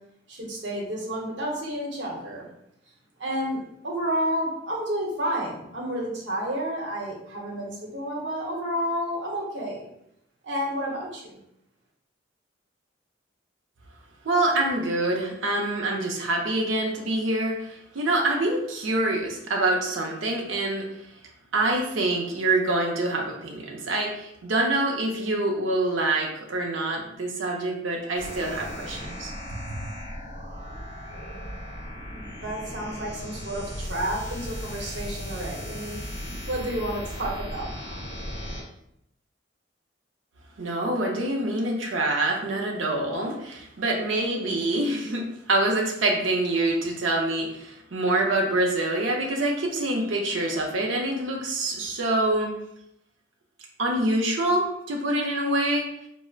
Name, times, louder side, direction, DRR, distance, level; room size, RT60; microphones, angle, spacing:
voice 1, 0.3-2.5 3.2-9.9 10.4-11.4 32.1-38.0, equal, 65° right, -2 dB, 0.9 m, -31 dB
voice 2, 14.2-20.9 21.5-29.3 29.7-29.8 40.6-52.5 53.8-55.9, right 2 dB, 90° right, 0 dB, 0.5 m, -26 dB
sound 1, 28.2-38.6, equal, 35° left, 1.4 m, -37 dB
4.4 x 2.0 x 2.3 m, 0.78 s
head